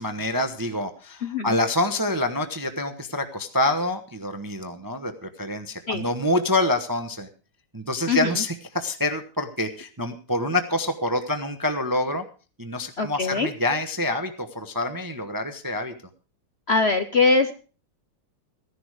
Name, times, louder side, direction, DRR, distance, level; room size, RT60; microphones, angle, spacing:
voice 1, 0.0-7.3 7.7-12.2 12.6-15.9, left 1 dB, 15° right, 8 dB, 0.7 m, -26 dB
voice 2, 1.2-1.6 5.9-6.0 8.1-8.4 13.0-13.5 16.7-17.5, left 4 dB, 50° left, 8 dB, 0.8 m, -22 dB
15.5 x 11.0 x 4.8 m, 0.37 s
omnidirectional pair, 2.0 m